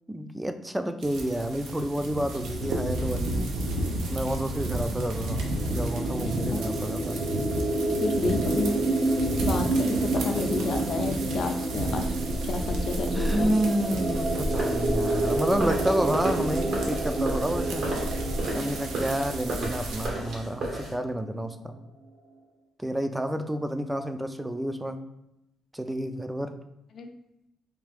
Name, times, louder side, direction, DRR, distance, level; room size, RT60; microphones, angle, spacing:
voice 1, 0.1-3.5 4.1-7.2 10.8-11.2 13.1-17.9 18.5-21.7 22.8-25.0 25.7-26.6, right 1 dB, 10° right, 8 dB, 0.3 m, -30 dB
sound 1, 1.0-20.1, right 1 dB, 90° right, 0.6 m, -32 dB
sound 2, 5.3-20.9, right 2 dB, 50° right, 0.7 m, -30 dB
voice 2, 8.0-9.0 9.4-13.6 18.6-18.7 26.9-27.1, left 3 dB, 55° left, 5 dB, 0.5 m, -31 dB
sound 3, 14.5-20.9, right 1 dB, 65° right, 1.1 m, -35 dB
3.5 x 2.4 x 3.4 m, 0.86 s
cardioid pair, 90°, 0 cm